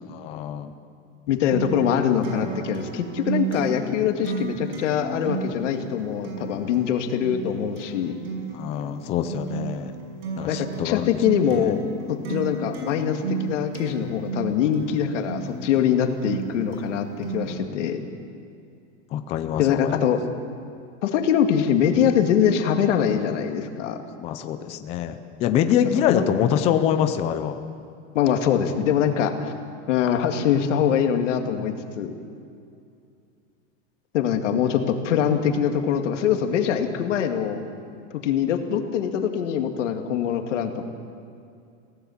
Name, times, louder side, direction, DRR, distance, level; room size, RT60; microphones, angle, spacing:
voice 1, 0.1-0.7 8.5-9.9 10.4-11.2 11.6-11.7 17.4-17.8 19.1-20.1 24.2-27.6, left 9 dB, 20° left, 8 dB, 0.5 m, -25 dB
voice 2, 1.3-8.2 10.5-11.8 12.1-18.0 19.6-20.2 21.0-24.0 26.1-26.3 28.1-29.5 29.9-32.1 34.1-37.6 38.1-40.9, left 8 dB, 90° left, 5 dB, 2.2 m, -23 dB
Acoustic guitar, 1.5-17.5, right 4 dB, 70° right, 5.9 m, -33 dB
24.0 x 17.0 x 7.2 m, 2.5 s
supercardioid pair, 175°, 35 cm